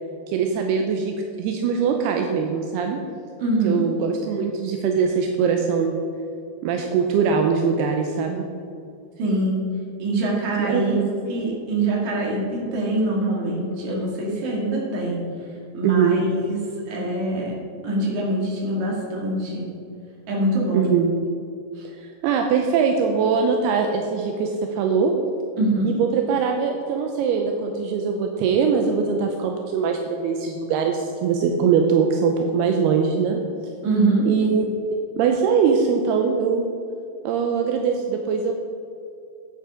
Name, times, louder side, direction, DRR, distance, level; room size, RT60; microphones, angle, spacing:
voice 1, 0.3-3.0 3.6-6.0 6.6-8.4 10.6-11.1 15.8-16.2 20.7-21.1 22.0-25.1 25.8-33.4 34.3-34.6 35.2-36.7 37.2-38.5, right 6 dB, 80° right, 3 dB, 2.4 m, -22 dB
voice 2, 3.4-3.8 9.2-9.6 10.0-11.0 11.3-15.2 15.7-16.6 16.9-17.5 17.8-19.7 20.3-20.9 21.8-21.9 25.6-25.9 33.8-34.3, right 2 dB, 50° right, -2 dB, 2.9 m, -24 dB
9.4 x 9.2 x 4.9 m, 2.6 s
omnidirectional pair, 5.2 m